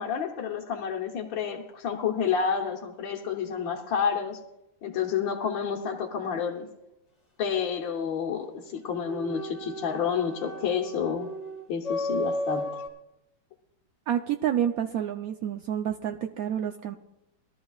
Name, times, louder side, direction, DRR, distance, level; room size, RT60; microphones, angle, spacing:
voice 1, 0.0-4.4 4.8-6.7 7.4-11.3 11.7-12.8, left 7 dB, 70° left, 0 dB, 1.8 m, -29 dB
sound 1, 9.0-12.9, left 1 dB, 20° left, 1.3 m, -34 dB
voice 2, 14.1-17.0, right 10 dB, 75° right, 5 dB, 0.8 m, -29 dB
21.0 x 13.0 x 2.4 m, 0.90 s
omnidirectional pair, 2.2 m